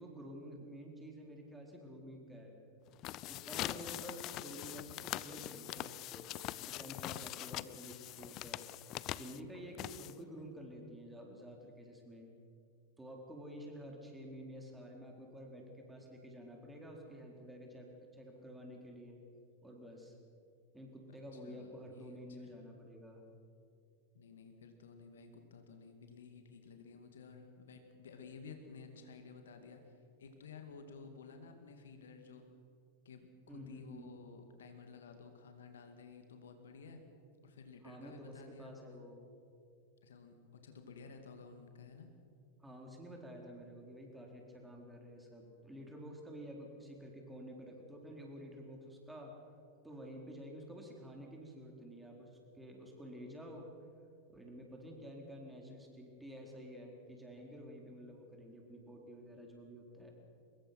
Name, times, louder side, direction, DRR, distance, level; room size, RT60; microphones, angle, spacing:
voice 1, 0.0-2.6 3.3-8.6 9.0-12.3 13.0-19.2 19.6-20.1 20.7-23.3 33.5-34.2 37.8-39.3 42.6-49.3 49.8-53.7 54.3-60.2, equal, 5° right, 0 dB, 4.3 m, -50 dB
sound 1, 2.9-10.4, left 15 dB, 35° left, 0.6 m, -43 dB
voice 2, 21.3-22.6 24.1-32.5 33.0-37.0 37.4-39.0 40.0-42.1, left 5 dB, 65° left, 6 dB, 2.3 m, -54 dB
24.0 x 21.5 x 6.0 m, 2.4 s
figure-of-eight pair, 90°, 0 cm